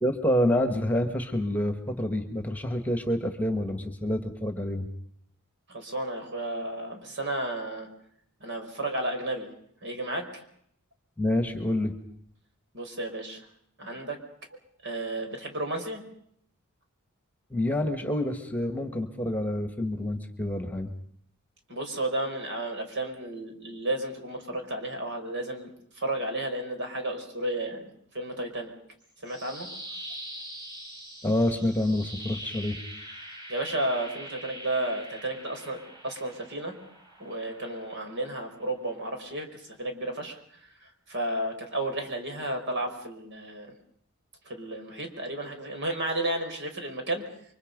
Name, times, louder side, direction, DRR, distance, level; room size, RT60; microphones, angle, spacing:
voice 1, 0.0-4.9 11.2-11.9 17.5-20.9 31.2-32.8, left 1 dB, 5° left, 6 dB, 1.9 m, -27 dB
voice 2, 5.7-7.9 8.4-9.5 9.8-10.4 12.7-13.4 13.8-14.2 14.8-16.0 21.7-25.7 26.0-27.9 28.1-28.7 29.2-29.7 33.5-36.8 37.2-40.4 40.8-43.7 44.4-47.2, right 1 dB, 55° right, 5 dB, 4.9 m, -32 dB
sound 1, 29.0-39.1, right 1 dB, 20° right, 6.9 m, -44 dB
29.5 x 24.5 x 5.4 m, 0.68 s
head